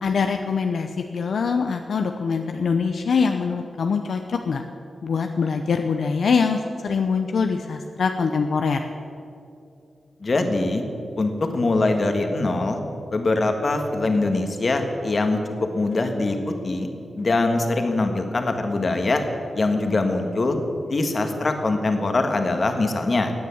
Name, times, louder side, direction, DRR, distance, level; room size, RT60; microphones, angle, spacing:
voice 1, 0.0-4.6 5.0-8.8, left 5 dB, 75° left, 5 dB, 0.7 m, -23 dB
voice 2, 10.2-10.8 11.2-12.8 13.1-16.9 17.1-19.2 19.5-20.6 20.8-23.3, left 2 dB, 45° left, 5 dB, 1.6 m, -23 dB
16.0 x 9.4 x 7.2 m, 2.7 s
wide cardioid pair, 95°, 0 cm